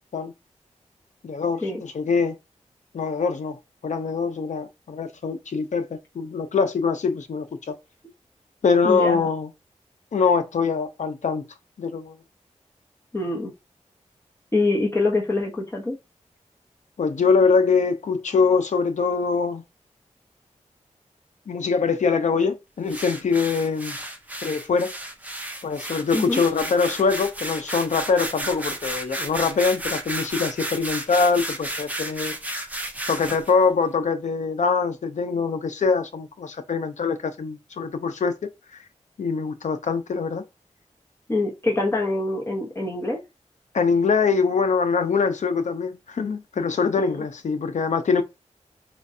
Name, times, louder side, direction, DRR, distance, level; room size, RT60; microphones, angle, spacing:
voice 1, 1.2-2.4 2.9-7.8 8.6-9.5 10.1-11.5 11.8-12.2 17.0-19.6 21.5-24.0 24.4-24.9 25.6-32.3 33.1-38.5 39.2-40.4 43.7-48.2, left 5 dB, 75° left, 0.6 m, -23 dB
voice 2, 8.8-9.3 13.1-13.5 14.5-16.0 26.1-26.4 41.3-43.2 47.0-47.2, left 2 dB, 20° left, 1.1 m, -25 dB
sound 1, 22.9-33.5, right 1 dB, 10° right, 0.6 m, -33 dB
4.4 x 2.4 x 2.6 m
wide cardioid pair, 85°, 12 cm